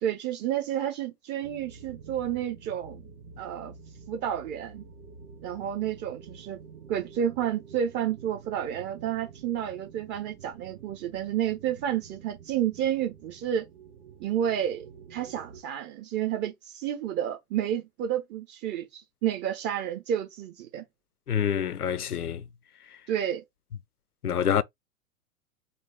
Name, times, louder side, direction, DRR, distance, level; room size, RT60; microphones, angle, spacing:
voice 1, 0.0-3.1 3.4-3.7 4.1-4.8 5.4-6.6 6.9-13.6 14.2-14.8 15.1-20.8 23.1-23.4, right 10 dB, 25° right, 0.8 m, -30 dB
sound 1, 1.4-15.6, right 6 dB, 45° right, 1.1 m, -49 dB
voice 2, 21.3-22.4 24.2-24.6, left 8 dB, 85° left, 0.5 m, -26 dB
3.9 x 2.7 x 3.4 m
figure-of-eight pair, 100°, 44 cm